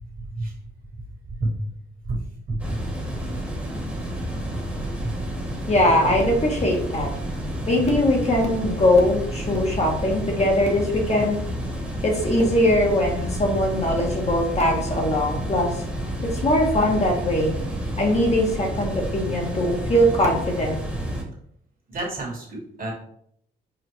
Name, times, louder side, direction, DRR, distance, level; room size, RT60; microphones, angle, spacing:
voice 1, 0.2-0.5 0.9-1.0 1.4-1.5 2.0-2.2 2.5-2.8 3.1-3.2 5.0-5.1 21.9-22.9, right 2 dB, 45° right, 0 dB, 1.5 m, -29 dB
sound 1, 2.6-21.2, right 1 dB, 5° right, 1.2 m, -30 dB
voice 2, 5.7-7.1 7.7-11.4 12.0-15.8 16.4-17.6 18.0-20.8, left 1 dB, 35° left, 0 dB, 1.0 m, -21 dB
5.0 x 2.4 x 3.0 m, 0.68 s
cardioid pair, 90°, 20 cm